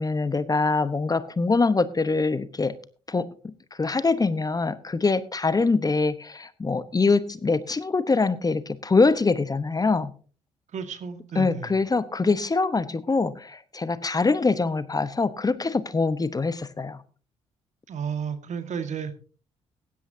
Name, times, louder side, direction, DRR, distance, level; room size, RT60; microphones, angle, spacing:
voice 1, 0.0-2.7 3.1-3.5 3.8-10.1 11.3-17.0, left 3 dB, 25° left, 15 dB, 1.0 m, -24 dB
voice 2, 10.7-11.7 17.9-19.2, right 7 dB, 55° right, 9 dB, 1.7 m, -32 dB
16.0 x 11.5 x 2.8 m, 0.38 s
hypercardioid pair, 50°, 14 cm